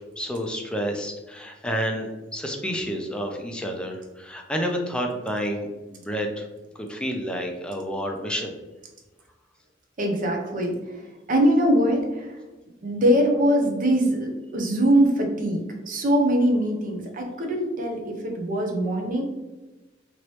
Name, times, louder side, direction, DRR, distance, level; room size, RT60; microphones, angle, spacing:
voice 1, 0.2-6.5 6.8-8.6, equal, 5° left, 2 dB, 0.4 m, -29 dB
voice 2, 10.0-10.7 11.3-12.3 12.8-15.6 15.9-19.2, equal, 45° right, 1 dB, 0.6 m, -22 dB
2.9 x 2.9 x 3.1 m, 1.1 s
head